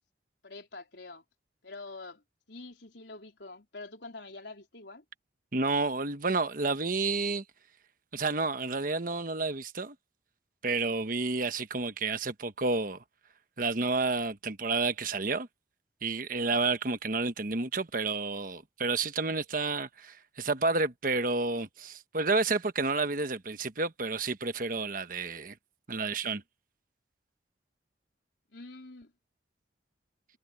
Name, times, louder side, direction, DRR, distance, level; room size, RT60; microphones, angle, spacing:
voice 1, 0.4-1.2 1.6-5.0 28.5-29.1, left 3 dB, 75° left, 3.9 m, -46 dB
voice 2, 5.5-7.4 8.1-9.9 10.6-13.0 13.6-15.5 16.0-25.5 25.9-26.4, right 3 dB, 50° right, 1.2 m, -30 dB
head